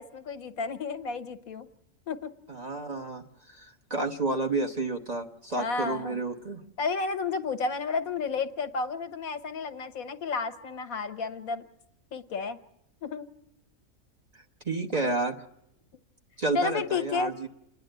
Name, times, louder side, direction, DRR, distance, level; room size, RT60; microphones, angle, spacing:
voice 1, 0.0-1.7 2.1-2.3 5.5-6.2 6.8-11.7 12.1-12.6 13.0-13.3 14.9-15.0 16.5-17.3, left 4 dB, 80° left, 9 dB, 1.5 m, -32 dB
voice 2, 2.5-3.2 3.6-3.7 3.9-6.6 14.6-15.4 16.4-17.5, right 2 dB, 30° right, 2 dB, 1.1 m, -30 dB
28.5 x 10.5 x 9.0 m, 0.83 s
omnidirectional pair, 1.5 m